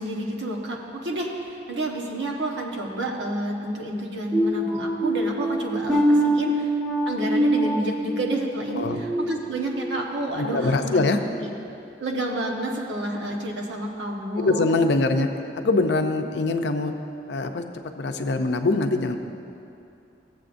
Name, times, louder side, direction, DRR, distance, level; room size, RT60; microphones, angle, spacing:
voice 1, 0.0-6.7 7.1-11.0 11.4-11.5 12.0-14.7, right 1 dB, 85° right, 0 dB, 1.1 m, -29 dB
sound 1, 4.3-10.0 10.4-10.7 11.2-11.4, right 1 dB, 5° left, 1.0 m, -25 dB
voice 2, 10.3-11.2 14.5-15.3 15.5-16.9 17.3-17.6 18.0-19.2, left 3 dB, 70° left, 6 dB, 0.5 m, -23 dB
15.0 x 7.5 x 2.6 m, 2.6 s
head